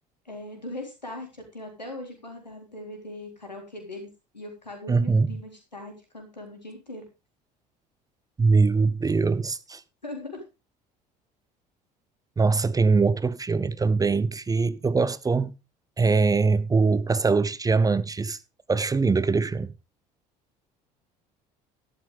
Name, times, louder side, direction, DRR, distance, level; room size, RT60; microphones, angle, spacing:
voice 1, 0.3-4.1 4.3-7.0 10.0-10.4, left 1 dB, 85° left, 3.8 m, -40 dB
voice 2, 4.9-5.3 8.4-9.8 12.4-15.5 16.0-18.4 18.7-19.7, right 4 dB, 15° right, 0.7 m, -22 dB
12.5 x 12.0 x 3.6 m
figure-of-eight pair, 60°, 21 cm